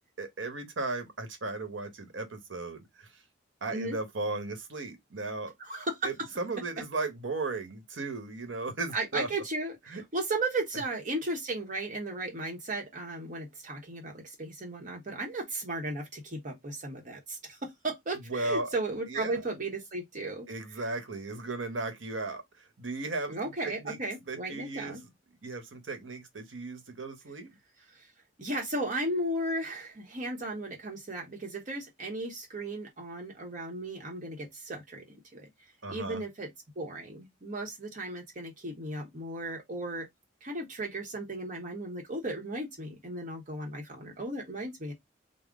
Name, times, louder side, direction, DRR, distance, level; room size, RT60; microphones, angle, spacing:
voice 1, 0.2-3.1 3.6-5.5 6.0-9.3 9.9-10.0 18.3-18.7 19.1-19.4 20.5-24.0 24.3-24.9 25.4-27.5 35.8-36.2, right 3 dB, 85° right, 1.0 m, -36 dB
voice 2, 5.6-6.1 8.9-20.5 20.7-20.8 23.3-25.0 27.9-28.1 28.4-35.5 35.9-36.5 36.8-40.1 40.4-44.9, right 2 dB, 45° right, 0.9 m, -35 dB
3.7 x 2.0 x 3.6 m
head